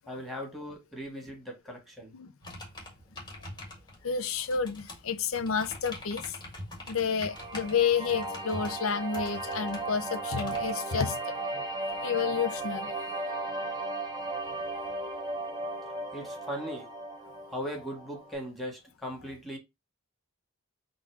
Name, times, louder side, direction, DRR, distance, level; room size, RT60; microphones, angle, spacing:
voice 1, 0.1-2.2 13.1-13.7 15.8-16.9 17.5-19.6, equal, ahead, 1.3 m, -39 dB
sound 1, 2.4-10.7, left 1 dB, 20° left, 1.5 m, -45 dB
voice 2, 4.0-6.4 6.9-11.2 12.0-12.9, left 6 dB, 75° left, 0.6 m, -30 dB
sound 2, 7.3-18.3, right 2 dB, 20° right, 0.9 m, -36 dB
3.7 x 2.6 x 4.6 m
head